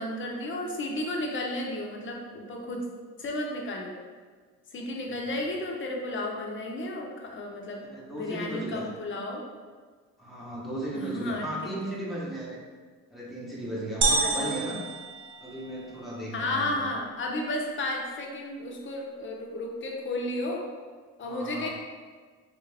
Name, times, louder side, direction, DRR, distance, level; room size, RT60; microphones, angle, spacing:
voice 1, 0.0-2.9 3.2-4.0 4.7-9.4 10.9-12.0 14.2-14.6 16.3-20.7 21.2-21.7, left 1 dB, 40° left, 0 dB, 0.7 m, -33 dB
voice 2, 7.8-8.9 10.2-12.6 13.1-14.8 15.4-16.8 21.2-21.7, right 1 dB, ahead, -6 dB, 0.9 m, -36 dB
sound 1, 14.0-16.0, right 3 dB, 40° right, 0.6 m, -28 dB
3.6 x 2.4 x 3.3 m, 1.5 s
cardioid pair, 90°, 30 cm